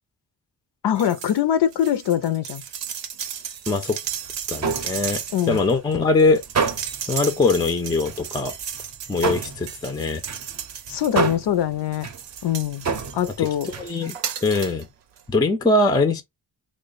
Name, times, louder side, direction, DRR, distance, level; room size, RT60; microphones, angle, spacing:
voice 1, 0.8-2.6 5.3-5.6 10.9-12.1 12.4-12.9 13.1-13.7, left 10 dB, 70° left, 0.5 m, -23 dB
sound 1, 0.9-1.4 1.7-11.5 11.9-14.8 15.2-15.3, right 8 dB, 80° right, 0.7 m, -35 dB
voice 2, 3.7-4.0 4.5-5.2 5.5-6.4 7.1-8.5 9.1-10.2 13.4-13.5 13.8-14.1 14.4-14.9 15.3-16.2, left 3 dB, 10° left, 0.4 m, -21 dB
sound 2, 4.1-6.0 6.4-7.2 7.5-7.7 8.0-13.9, right 5 dB, 40° right, 0.6 m, -29 dB
3.1 x 2.1 x 3.8 m
wide cardioid pair, 100°, 43 cm